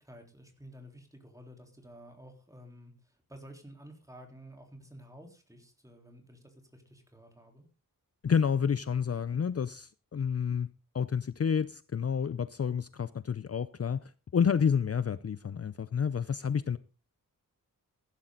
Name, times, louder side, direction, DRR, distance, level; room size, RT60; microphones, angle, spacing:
voice 1, 0.0-7.6, equal, 10° right, 3.8 m, -52 dB
voice 2, 8.2-10.7 10.9-16.8, left 7 dB, 45° left, 0.6 m, -29 dB
15.5 x 11.5 x 3.9 m
wide cardioid pair, 110°, 33 cm